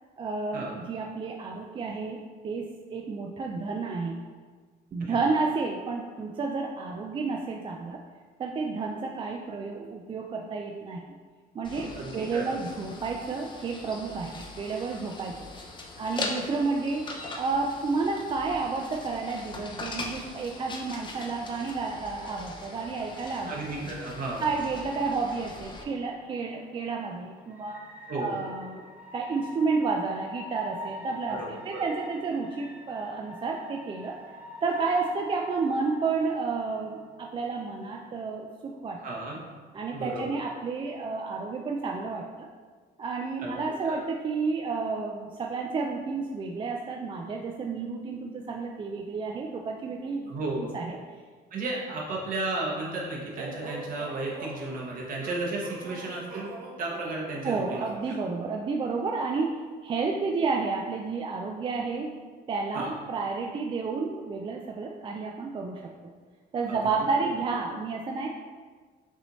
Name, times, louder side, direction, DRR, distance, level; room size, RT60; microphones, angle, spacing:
voice 1, 0.2-2.2 2.4-4.2 4.9-8.0 8.4-11.0 11.5-15.4 16.0-17.1 17.4-23.9 24.4-27.8 28.1-28.8 29.1-34.2 34.6-39.0 39.7-42.5 43.0-50.3 50.6-51.0 57.4-62.1 62.5-65.9 66.5-68.3, right 4 dB, 30° right, 1 dB, 0.3 m, -31 dB
sound 1, 11.6-25.8, left 2 dB, 30° left, 0.6 m, -41 dB
voice 2, 11.9-12.6 23.5-24.4 28.1-28.3 31.3-31.8 39.0-39.4 39.9-40.4 43.4-43.6 43.8-44.0 50.3-50.7 51.5-56.5 56.8-57.9 62.7-63.0 66.7-66.8, right 2 dB, 55° right, -3 dB, 1.2 m, -33 dB
sound 2, 22.1-38.0, left 2 dB, 5° right, 0.8 m, -47 dB
sound 3, 53.4-58.2, right 2 dB, 70° right, 0.9 m, -42 dB
6.1 x 2.7 x 3.1 m, 1.5 s
cardioid pair, 110°, 17 cm